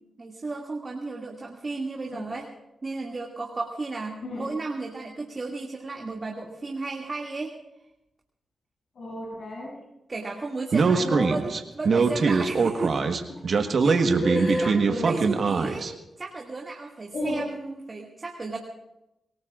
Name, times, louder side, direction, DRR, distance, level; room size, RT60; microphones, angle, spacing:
voice 1, 0.2-2.5 2.8-7.5 10.1-13.0 13.5-14.0 14.3-14.8 15.0-15.9 16.2-18.6, right 3 dB, 40° right, 0 dB, 2.3 m, -34 dB
voice 2, 9.0-9.7 10.8-11.3 14.2-15.1 17.1-17.4, left 1 dB, 70° left, -6 dB, 7.9 m, -31 dB
Speech, 10.7-15.9, right 4 dB, 65° right, 1.4 m, -22 dB
25.5 x 18.5 x 2.5 m, 0.90 s
supercardioid pair, 45°, 0 cm